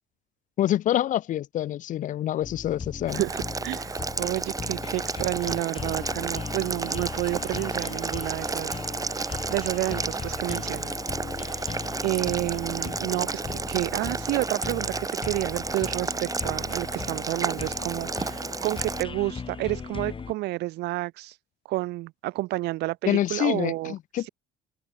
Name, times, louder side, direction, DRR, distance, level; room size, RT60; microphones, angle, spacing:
voice 1, 0.6-3.2 23.1-24.3, left 12 dB, 50° left, 0.4 m, -26 dB
sound 1, 2.4-20.3, left 5 dB, 30° left, 3.4 m, -38 dB
Boiling, 3.1-19.0, right 4 dB, 20° right, 1.6 m, -32 dB
voice 2, 3.1-8.8 9.2-11.0 11.5-11.6 12.0-14.9 15.2-21.3 21.7-23.9, right 19 dB, 80° right, 0.6 m, -30 dB
open air
cardioid pair, 110°, 17 cm